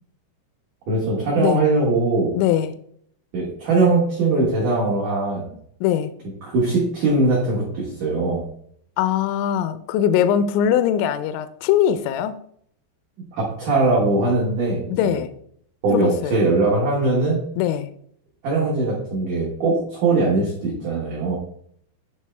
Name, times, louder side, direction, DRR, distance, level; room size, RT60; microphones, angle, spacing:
voice 1, 0.9-2.4 3.3-5.5 6.5-8.5 13.4-15.2 15.8-17.4 18.4-21.4, right 3 dB, 70° right, 1.9 m, -21 dB
voice 2, 2.3-2.7 5.8-6.1 9.0-12.4 14.9-15.3 15.9-16.4 17.6-17.9, left 10 dB, 85° left, 2.7 m, -21 dB
9.5 x 3.6 x 3.3 m
omnidirectional pair, 5.8 m